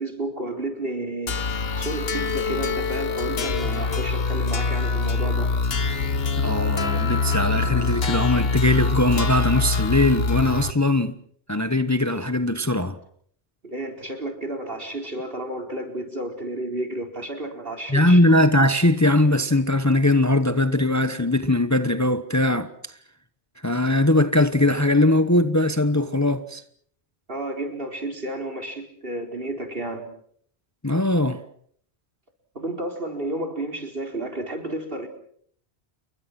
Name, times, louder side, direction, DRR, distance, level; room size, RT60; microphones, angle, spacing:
voice 1, 0.0-5.5 13.6-18.2 27.3-30.0 32.5-35.1, right 1 dB, 60° right, 4.6 m, -31 dB
sound 1, 1.3-10.7, left 4 dB, 65° left, 1.6 m, -24 dB
voice 2, 6.4-11.2 11.5-13.0 17.9-22.7 23.6-26.6 30.8-31.4, left 1 dB, 15° left, 1.0 m, -20 dB
29.5 x 22.5 x 6.1 m
omnidirectional pair, 1.1 m